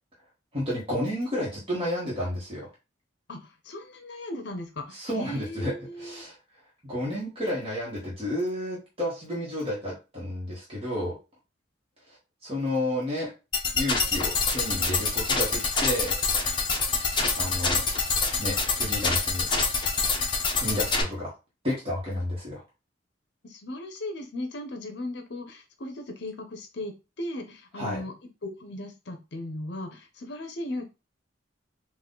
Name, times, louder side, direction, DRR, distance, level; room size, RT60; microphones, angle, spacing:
voice 1, 0.5-2.7 4.9-5.7 6.0-6.3 6.8-11.2 12.1-12.2 12.4-13.3 13.7-16.2 17.4-17.8 18.4-19.5 20.5-21.3 21.6-22.6 27.8-28.0, left 1 dB, 30° right, -6 dB, 1.3 m, -31 dB
voice 2, 3.3-6.2 23.4-30.9, left 1 dB, 60° left, 5 dB, 0.7 m, -37 dB
sound 1, 13.5-21.0, left 4 dB, 25° left, 0.8 m, -26 dB
4.1 x 2.5 x 3.8 m, 0.29 s
head